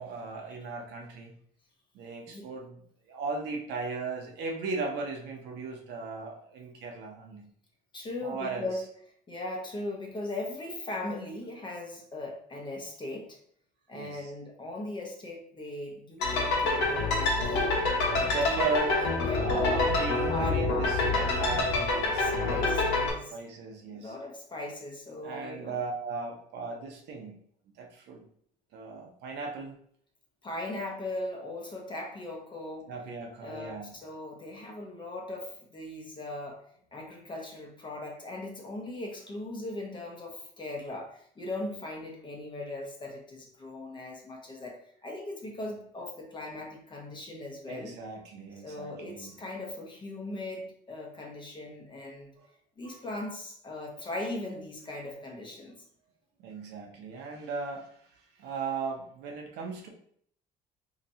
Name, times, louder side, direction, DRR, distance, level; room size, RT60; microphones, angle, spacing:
voice 1, 0.0-1.4 1.9-7.4 8.2-8.7 13.9-14.3 18.3-19.0 19.3-22.9 23.3-24.1 25.2-27.4 27.8-28.3 28.7-29.8 32.9-34.0 47.7-49.4 52.4-52.5 56.4-59.9, right 4 dB, 80° right, 1 dB, 0.8 m, -37 dB
voice 2, 7.9-8.8 9.3-13.4 13.9-17.8 18.1-19.9 20.3-21.0 22.2-23.3 23.8-25.8 30.4-32.9 33.4-36.6 36.9-44.8 45.0-47.9 48.6-52.3 52.8-55.8, left 2 dB, 30° left, 0 dB, 1.0 m, -38 dB
sound 1, 16.2-23.1, left 3 dB, 90° left, 1.2 m, -27 dB
4.1 x 3.0 x 2.7 m, 0.63 s
cardioid pair, 110°, 17 cm